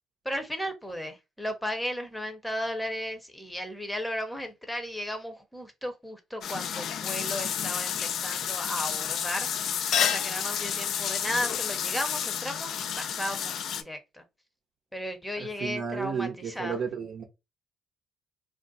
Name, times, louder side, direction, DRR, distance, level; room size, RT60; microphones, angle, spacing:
voice 1, 0.2-9.5 10.0-14.2 14.9-16.8, equal, 5° left, 0.8 m, -35 dB
sound 1, 6.4-13.8, left 8 dB, 70° left, 0.3 m, -30 dB
voice 2, 15.4-17.2, right 6 dB, 60° right, 0.7 m, -33 dB
2.5 x 2.1 x 3.9 m
cardioid pair, 80°, 0 cm